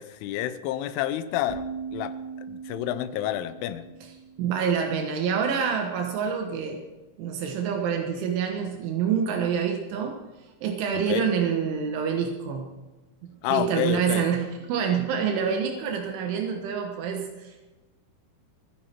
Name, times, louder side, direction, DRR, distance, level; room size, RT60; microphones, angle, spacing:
voice 1, 0.0-1.6 1.9-2.1 2.5-3.9 10.9-11.3 13.4-14.4, left 12 dB, 85° left, 13 dB, 3.2 m, -29 dB
sound 1, 1.5-5.4, right 5 dB, 25° right, 1.2 m, -40 dB
voice 2, 4.4-6.9 7.2-10.2 10.6-12.7 13.2-17.7, right 7 dB, 80° right, 3 dB, 3.6 m, -27 dB
24.5 x 10.5 x 4.4 m, 1.1 s
omnidirectional pair, 5.6 m